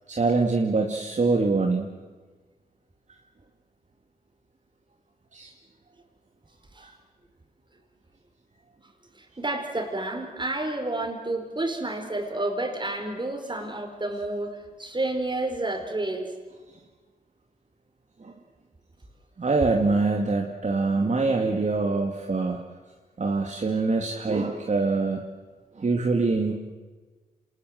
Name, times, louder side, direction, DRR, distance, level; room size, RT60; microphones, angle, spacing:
voice 1, 0.1-1.9 5.3-5.5 6.8-6.9 18.2-18.3 19.4-22.6 23.2-25.2 25.8-26.5, right 3 dB, 45° right, 2 dB, 2.3 m, -24 dB
voice 2, 9.2-16.3, right 2 dB, 25° right, 5 dB, 4.7 m, -30 dB
27.0 x 20.0 x 7.8 m, 1.4 s
cardioid pair, 50°, 17 cm